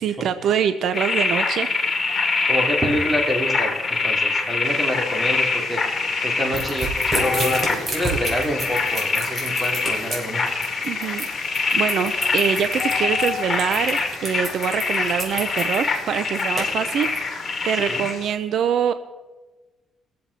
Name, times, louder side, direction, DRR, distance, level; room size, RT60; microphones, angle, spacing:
voice 1, 0.0-1.7 10.8-18.9, right 8 dB, 70° right, 11 dB, 0.5 m, -24 dB
sound 1, 0.9-18.1, left 4 dB, 35° left, 2.4 m, -24 dB
voice 2, 2.5-3.7 4.0-10.4 17.7-18.0, equal, 15° right, 0 dB, 3.1 m, -27 dB
sound 2, 4.6-18.3, left 7 dB, 65° left, 1.2 m, -37 dB
sound 3, 6.5-17.2, right 2 dB, 30° right, 4.0 m, -30 dB
22.0 x 7.6 x 4.2 m, 1.2 s
cardioid pair, 90°, 0 cm